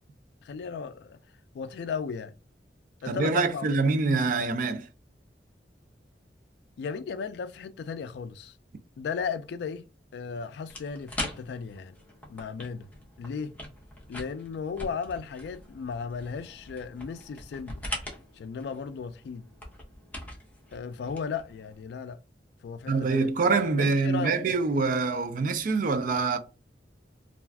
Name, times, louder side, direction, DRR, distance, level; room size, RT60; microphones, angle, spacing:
voice 1, 0.4-1.2 1.5-2.3 3.0-3.7 6.8-8.6 9.0-9.9 10.1-12.0 12.3-12.9 13.2-13.6 14.1-17.8 18.3-19.5 20.7-22.2 22.6-23.3 23.8-24.5, left 5 dB, 65° left, 0.3 m, -35 dB
voice 2, 3.1-4.9 22.9-26.4, right 4 dB, 50° right, 0.4 m, -25 dB
sound 1, 10.7-21.8, left 1 dB, 10° left, 0.7 m, -42 dB
2.4 x 2.3 x 3.3 m
head